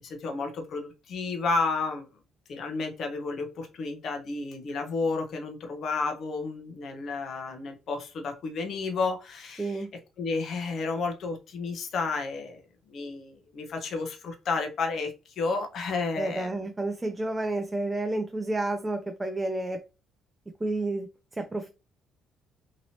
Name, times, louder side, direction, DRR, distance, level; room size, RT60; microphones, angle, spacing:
voice 1, 0.0-2.1 2.5-9.9 10.2-12.6 12.9-16.6, left 4 dB, 55° left, 0.7 m, -31 dB
voice 2, 9.6-9.9 16.2-19.8 20.6-21.1 21.3-21.7, right 2 dB, 15° right, 0.4 m, -30 dB
2.9 x 2.8 x 2.8 m
cardioid pair, 105°, 0 cm